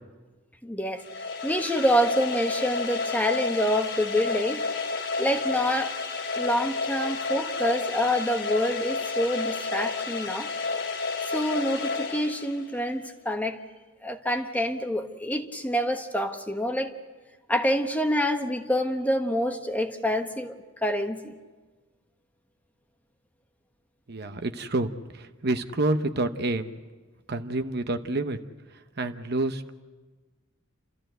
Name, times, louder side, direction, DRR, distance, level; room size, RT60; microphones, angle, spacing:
voice 1, 0.6-4.7 5.2-6.0 6.3-10.5 11.3-13.6 14.0-16.9 17.5-20.5 20.8-21.3, equal, 10° left, 5 dB, 1.2 m, -27 dB
sound 1, 1.0-12.9, left 4 dB, 70° left, 2.9 m, -31 dB
voice 2, 24.1-26.7 27.3-28.4 29.0-29.7, right 2 dB, 55° right, 8 dB, 0.9 m, -28 dB
29.5 x 14.0 x 7.9 m, 1.3 s
head